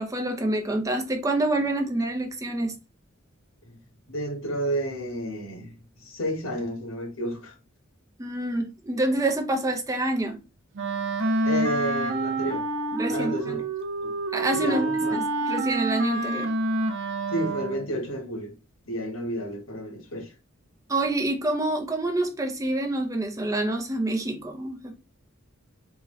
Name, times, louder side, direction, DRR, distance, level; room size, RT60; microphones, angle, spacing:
voice 1, 0.0-2.7 8.2-10.4 12.9-13.6 14.3-14.9 15.1-16.5 20.9-25.0, right 2 dB, 15° right, 0.6 m, -27 dB
voice 2, 4.1-7.5 11.4-12.6 13.1-13.6 14.0-14.1 14.5-15.2 17.3-18.5 18.9-20.3, equal, 90° left, 1.3 m, -31 dB
Wind instrument woodwind instrument, 10.8-17.9, right 2 dB, 65° right, 0.6 m, -28 dB
3.6 x 2.7 x 3.1 m
head